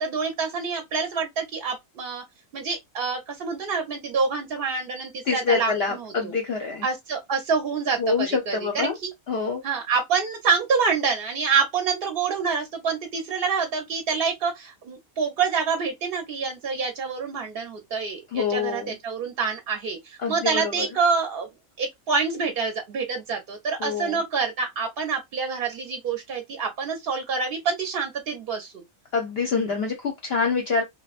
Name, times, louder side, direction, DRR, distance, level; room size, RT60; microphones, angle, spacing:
voice 1, 0.0-2.2 2.5-6.3 6.8-9.1 9.6-21.5 21.8-28.8, right 5 dB, 55° right, 0.7 m, -27 dB
voice 2, 5.3-6.9 8.0-9.0 9.3-9.6 18.3-19.0 20.2-20.9 23.8-24.2 29.1-30.8, left 5 dB, 60° left, 0.7 m, -26 dB
2.8 x 2.1 x 2.4 m
omnidirectional pair, 1.4 m